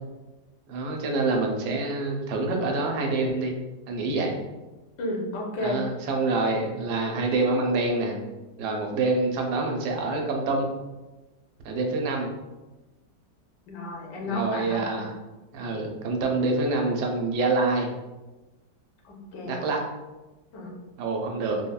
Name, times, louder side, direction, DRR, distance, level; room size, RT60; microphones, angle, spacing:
voice 1, 0.7-3.5 3.9-4.3 5.6-8.1 8.6-10.7 11.6-12.3 14.2-15.2 15.5-17.9 19.4-19.8 21.0-21.6, right 3 dB, 80° right, 2 dB, 1.1 m, -26 dB
voice 2, 5.0-5.8 13.7-15.0 19.0-19.5 20.5-20.7, left 1 dB, 80° left, -1 dB, 1.3 m, -32 dB
3.5 x 2.1 x 2.2 m, 1.1 s
omnidirectional pair, 1.8 m